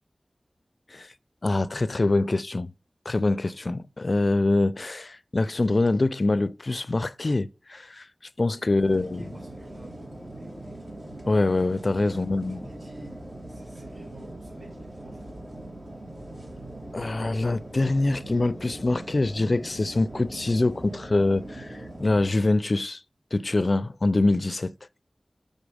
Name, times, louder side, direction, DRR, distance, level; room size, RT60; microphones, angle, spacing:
voice 1, 1.4-2.7 3.1-8.1 8.4-9.2 11.3-12.7 16.9-23.0 23.3-24.7, left 2 dB, 60° left, 0.4 m, -24 dB
voice 2, 8.5-10.8 12.0-15.3, right 1 dB, 70° right, 4.1 m, -51 dB
sound 1, 8.8-22.3, right 1 dB, 50° right, 2.8 m, -41 dB
6.2 x 5.3 x 4.9 m
wide cardioid pair, 50°, 0 cm